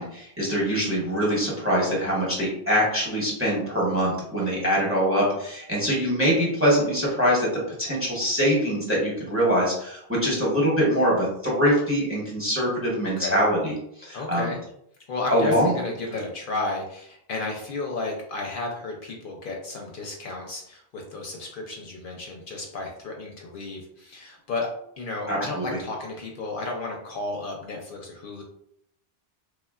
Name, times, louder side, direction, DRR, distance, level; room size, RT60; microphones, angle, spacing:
voice 1, 0.0-7.5 7.8-14.5 15.3-15.7 25.3-25.8, equal, 15° right, -5 dB, 0.7 m, -23 dB
voice 2, 14.1-14.6 15.1-24.7 25.0-28.4, left 2 dB, 65° left, 0 dB, 0.7 m, -33 dB
3.2 x 2.2 x 2.3 m, 0.72 s
omnidirectional pair, 1.0 m